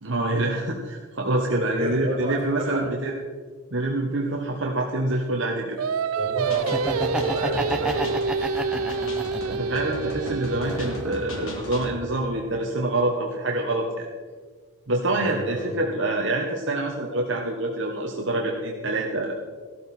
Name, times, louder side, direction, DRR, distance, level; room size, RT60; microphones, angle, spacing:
voice 1, 0.0-3.1 3.7-5.8 9.4-14.1 14.9-19.3, right 2 dB, 60° right, 1 dB, 1.2 m, -26 dB
voice 2, 1.5-3.0 6.1-8.7 15.2-15.9, right 1 dB, 25° right, -4 dB, 4.7 m, -32 dB
Singing, 5.8-11.2, right 5 dB, 85° right, 0.5 m, -28 dB
sound 1, 6.5-12.0, left 1 dB, 75° left, 2.3 m, -37 dB
Laughter, 6.6-9.7 10.2-11.3, right 1 dB, 5° right, 0.8 m, -30 dB
14.5 x 13.0 x 4.3 m, 1.5 s
head